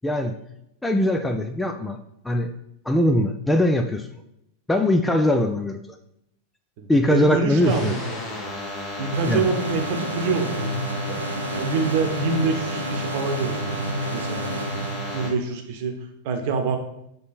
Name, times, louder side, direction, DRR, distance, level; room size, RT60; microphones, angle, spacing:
voice 1, 0.0-0.4 0.8-2.0 2.2-2.5 2.9-4.1 4.7-5.8 6.9-7.9 9.3-9.4, left 1 dB, 5° left, 6 dB, 0.4 m, -21 dB
voice 2, 6.8-8.5 9.0-11.2 11.5-13.8 14.1-14.8 15.1-16.0 16.2-16.8, right 4 dB, 45° right, 5 dB, 1.0 m, -26 dB
sound 1, 7.6-15.3, left 1 dB, 25° left, 1.7 m, -33 dB
sound 2, 9.1-15.6, right 1 dB, 75° right, 0.4 m, -30 dB
7.3 x 3.9 x 4.1 m, 0.79 s
figure-of-eight pair, 90°, 0 cm